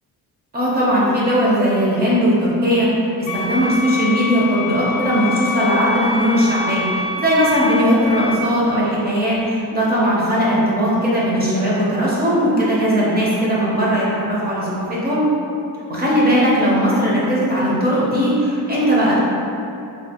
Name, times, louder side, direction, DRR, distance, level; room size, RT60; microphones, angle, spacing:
voice 1, 0.5-2.9 3.2-6.8 7.2-15.2 15.9-19.2, equal, 25° right, -7 dB, 0.5 m, -18 dB
sound 1, 3.3-8.4, left 2 dB, 65° left, 0.5 m, -26 dB
3.2 x 2.3 x 2.8 m, 2.7 s
cardioid pair, 175°, 38 cm